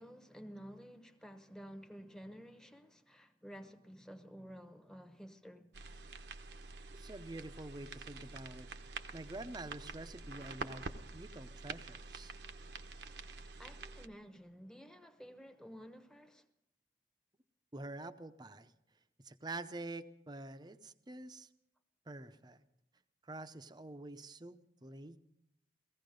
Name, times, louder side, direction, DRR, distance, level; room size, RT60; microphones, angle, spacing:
voice 1, 0.0-5.7 13.6-16.5, equal, 5° left, 0.9 m, -52 dB
sound 1, 5.7-14.1, right 4 dB, 70° right, 0.9 m, -47 dB
voice 2, 6.9-10.8 11.1-12.3 17.7-18.7 19.2-21.5 22.1-22.6 23.2-25.2, right 2 dB, 25° right, 0.7 m, -47 dB
17.5 x 15.5 x 5.2 m
head